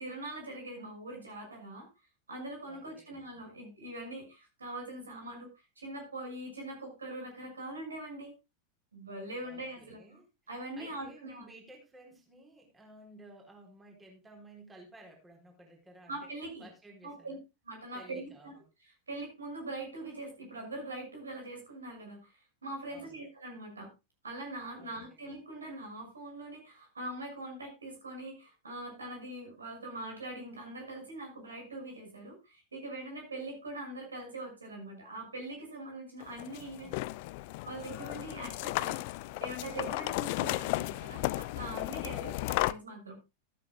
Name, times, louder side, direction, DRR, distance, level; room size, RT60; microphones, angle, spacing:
voice 1, 0.0-1.9 2.3-8.3 8.9-10.0 10.5-11.5 16.1-16.7 17.0-17.4 17.6-18.5 18.8-23.9 24.2-36.9 37.7-39.0 39.4-43.2, right 2 dB, 75° right, 2 dB, 6.2 m, -42 dB
voice 2, 2.7-3.2 9.4-10.3 10.8-16.3 16.6-17.4 17.9-18.6 22.9-23.2 24.8-25.2 36.6-37.0 42.0-42.3, right 1 dB, 10° right, 1 dB, 4.0 m, -55 dB
sound 1, 36.2-42.7, left 19 dB, 50° left, 0.5 m, -34 dB
14.0 x 12.5 x 2.3 m, 0.25 s
figure-of-eight pair, 90°, 0 cm